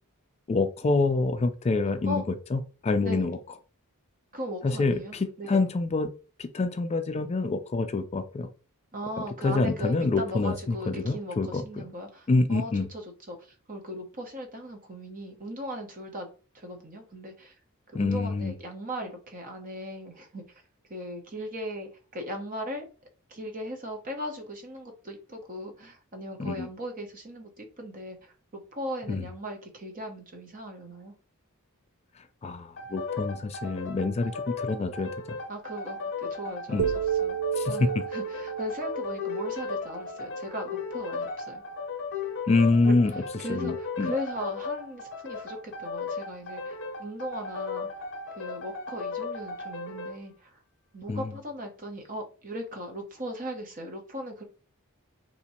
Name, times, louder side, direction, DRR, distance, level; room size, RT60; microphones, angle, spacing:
voice 1, 0.5-2.2 2.5-3.4 4.6-6.1 6.4-8.5 9.4-11.9 12.3-12.9 17.9-18.5 26.4-26.7 29.1-29.3 32.4-35.4 36.7-36.9 37.6-38.0 42.5-43.1 43.5-44.1 51.1-51.3, left 3 dB, 30° left, 8 dB, 0.3 m, -26 dB
voice 2, 4.3-5.6 8.9-16.3 16.5-17.5 17.9-20.6 20.9-22.8 23.3-31.1 35.5-41.6 42.8-42.9 43.4-48.0 48.3-50.6 50.9-54.4, equal, 40° right, 3 dB, 0.9 m, -38 dB
sound 1, 32.8-50.2, left 4 dB, 55° left, 0.7 m, -36 dB
sound 2, 36.8-40.9, right 9 dB, 75° right, 0.4 m, -32 dB
2.9 x 2.7 x 4.1 m, 0.36 s
head